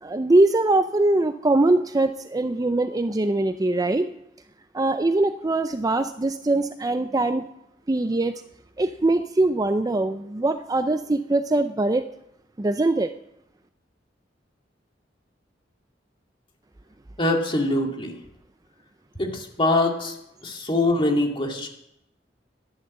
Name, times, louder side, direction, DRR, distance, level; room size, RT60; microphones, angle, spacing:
voice 1, 0.0-4.1 4.7-7.4 7.9-8.4 8.8-12.1 12.6-13.1, right 2 dB, 20° right, 10 dB, 0.4 m, -22 dB
voice 2, 17.2-18.1 19.2-20.1 20.4-21.7, left 2 dB, 30° left, 2 dB, 2.3 m, -23 dB
13.0 x 10.5 x 7.5 m, 0.83 s
head